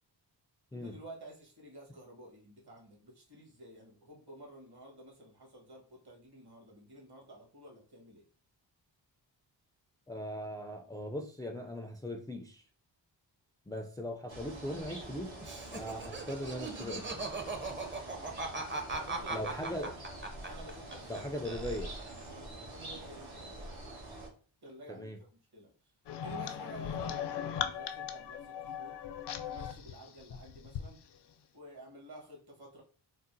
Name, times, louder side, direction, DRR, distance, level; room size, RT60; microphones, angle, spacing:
voice 1, 0.7-8.2 18.2-18.4 18.9-19.8 20.5-21.3 22.1-23.8 24.6-25.7 26.2-29.0 29.4-31.0 31.5-32.8, right 1 dB, 55° right, -1 dB, 1.5 m, -51 dB
voice 2, 10.1-12.6 13.7-15.4 15.7-17.1 19.3-20.0 21.1-21.9 24.9-25.2, equal, 10° left, 3 dB, 0.3 m, -39 dB
sound 1, 14.3-24.3, right 1 dB, 80° right, 1.4 m, -46 dB
Laughter, 15.4-21.2 21.4-22.2, right 3 dB, 25° right, 0.6 m, -39 dB
sound 2, 26.1-30.9, left 8 dB, 65° left, 0.5 m, -38 dB
3.8 x 2.0 x 2.6 m, 0.40 s
cardioid pair, 60°, 45 cm